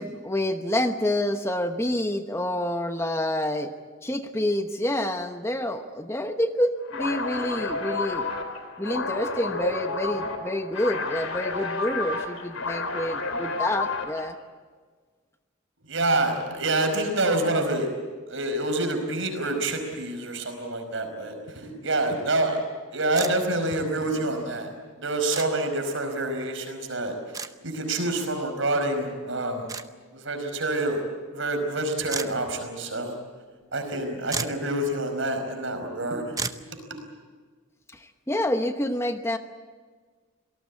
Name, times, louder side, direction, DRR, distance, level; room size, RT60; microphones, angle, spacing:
voice 1, 0.0-3.7 4.0-8.3 8.8-14.3 38.3-39.4, left 1 dB, 15° left, 7 dB, 1.0 m, -28 dB
sound 1, 6.9-14.3, left 3 dB, 80° left, 3.3 m, -31 dB
voice 2, 15.9-17.9 18.3-22.6 22.9-24.7 25.0-29.7 30.1-31.0 31.3-33.1 33.7-36.6 36.9-37.0, right 2 dB, 65° right, 6 dB, 5.1 m, -27 dB
sound 2, 23.2-23.3 25.3-25.5 27.3-27.5 29.7-29.9 32.1-32.3 33.9-34.0 34.3-34.6 36.4-36.6, right 5 dB, 15° right, 0.8 m, -31 dB
26.5 x 18.5 x 8.6 m, 1.5 s
head